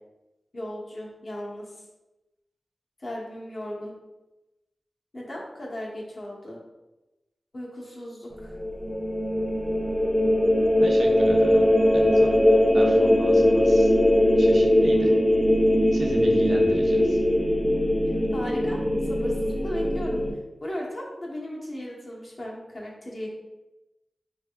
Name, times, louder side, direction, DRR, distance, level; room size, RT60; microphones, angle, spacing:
voice 1, 0.5-1.7 3.0-3.9 5.1-6.6 7.5-8.5 18.3-20.2 20.6-23.3, left 1 dB, 50° left, -3 dB, 0.9 m, -36 dB
sound 1, 8.4-20.3, left 1 dB, 5° right, 0.5 m, -21 dB
voice 2, 10.8-12.4 12.7-13.9 14.4-15.1 15.9-17.2, right 1 dB, 80° right, 0 dB, 0.5 m, -36 dB
3.3 x 3.3 x 2.3 m, 1.0 s
wide cardioid pair, 90°, 0 cm